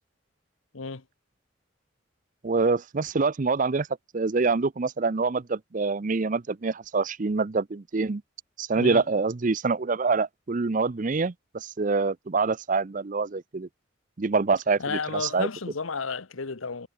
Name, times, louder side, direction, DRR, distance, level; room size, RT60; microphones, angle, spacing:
voice 1, 0.7-1.0 8.7-9.0 14.8-16.9, left 4 dB, 80° left, 1.1 m, -32 dB
voice 2, 2.4-3.9 4.1-8.2 8.6-13.7 14.2-15.5, right 4 dB, 40° right, 0.5 m, -26 dB
head